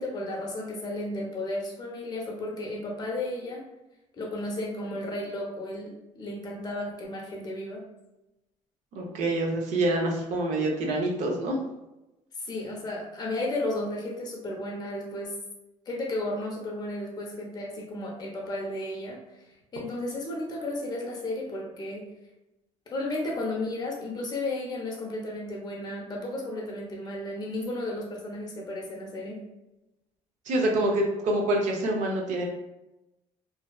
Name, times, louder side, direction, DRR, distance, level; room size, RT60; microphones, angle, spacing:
voice 1, 0.0-3.7 4.1-7.8 12.3-15.3 15.9-19.2 19.7-22.1 22.9-29.4, left 1 dB, 30° left, -1 dB, 0.7 m, -33 dB
voice 2, 8.9-11.6 30.5-32.5, right 1 dB, 65° right, 0 dB, 0.6 m, -26 dB
2.6 x 2.2 x 2.3 m, 0.96 s
cardioid pair, 130°, 13 cm